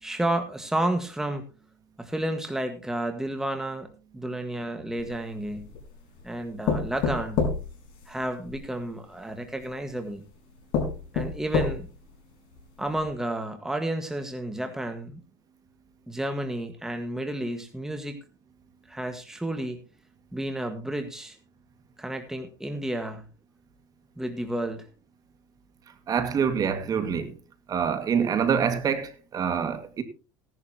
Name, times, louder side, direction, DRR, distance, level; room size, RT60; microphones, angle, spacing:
voice 1, 0.0-1.4 2.0-3.9 4.1-5.7 6.2-7.4 8.1-10.2 11.1-11.9 12.8-15.2 16.1-18.2 18.9-19.8 20.3-21.4 22.0-23.2 24.2-24.8, right 1 dB, 5° right, 1.7 m, -31 dB
sound 1, 5.0-5.9 6.7-8.6 9.6-9.7 10.3-10.4 10.7-12.1 12.6-12.7 13.0-13.1, left 5 dB, 50° left, 4.8 m, -28 dB
voice 2, 26.1-27.3 27.7-30.0, right 7 dB, 35° right, 2.1 m, -26 dB
17.0 x 11.0 x 2.9 m
supercardioid pair, 110°, 11 cm